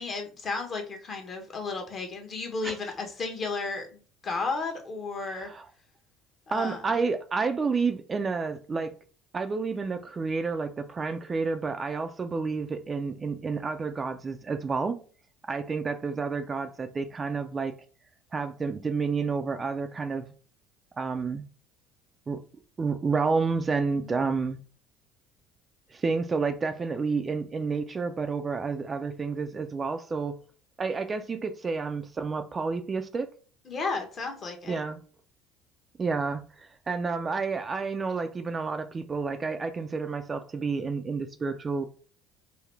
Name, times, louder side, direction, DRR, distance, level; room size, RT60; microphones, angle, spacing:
voice 1, 0.0-5.5 6.5-6.9 23.9-24.2 33.7-34.8, left 4 dB, 40° left, 1.1 m, -33 dB
voice 2, 5.3-5.7 6.5-9.0 9.3-15.0 15.5-17.7 18.3-20.3 21.0-21.4 22.3-22.4 22.8-24.6 25.9-30.4 30.8-33.3 34.7-35.0 36.0-42.0, right 4 dB, 30° right, 0.4 m, -30 dB
3.8 x 2.1 x 3.3 m
hypercardioid pair, 75°, 0 cm